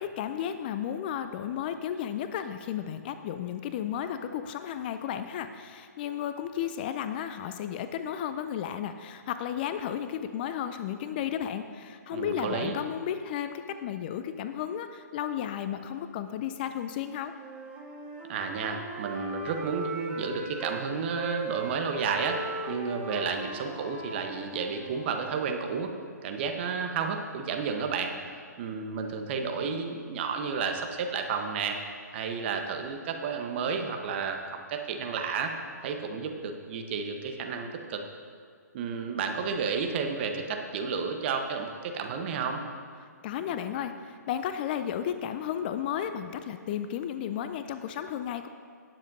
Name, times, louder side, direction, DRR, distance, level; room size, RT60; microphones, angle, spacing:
voice 1, 0.0-17.3 43.2-48.5, left 9 dB, 30° left, 9 dB, 0.4 m, -33 dB
voice 2, 12.1-12.8 18.3-25.9 26.2-28.1 28.6-31.8 32.1-34.4 34.7-35.5 35.8-38.0 38.7-42.6, right 5 dB, 40° right, 4 dB, 1.1 m, -31 dB
Wind instrument woodwind instrument, 17.3-20.8 21.2-25.4, right 2 dB, 15° right, 1.5 m, -39 dB
18.5 x 7.4 x 2.7 m, 2.1 s
figure-of-eight pair, 135°, 10 cm